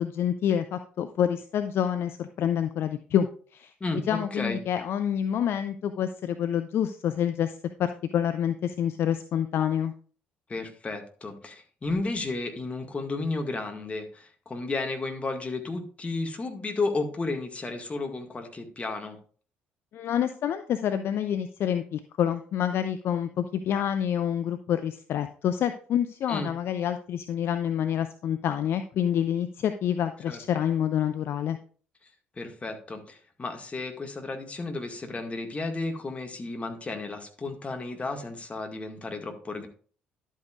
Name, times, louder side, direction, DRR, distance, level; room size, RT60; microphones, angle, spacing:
voice 1, 0.0-3.7 4.1-9.9 19.9-31.6, left 9 dB, 50° left, 9 dB, 0.5 m, -27 dB
voice 2, 3.8-4.6 10.5-19.2 26.3-26.5 30.3-30.4 32.4-39.7, left 3 dB, 25° left, 3 dB, 1.8 m, -33 dB
11.5 x 8.3 x 2.4 m, 0.43 s
figure-of-eight pair, 50°, 5 cm